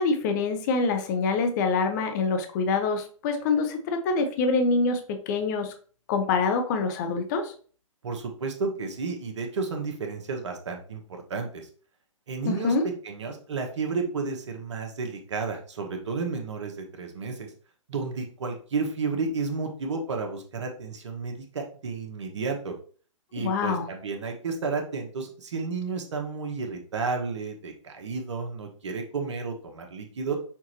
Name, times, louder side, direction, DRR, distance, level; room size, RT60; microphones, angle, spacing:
voice 1, 0.0-5.7 6.1-7.5 12.4-12.8 23.4-23.8, left 4 dB, 35° left, 6 dB, 0.8 m, -25 dB
voice 2, 8.0-11.0 11.3-11.7 12.3-17.5 17.9-22.7 23.3-30.4, right 4 dB, 60° right, 3 dB, 1.1 m, -32 dB
5.9 x 2.5 x 3.0 m, 0.43 s
figure-of-eight pair, 135°, 17 cm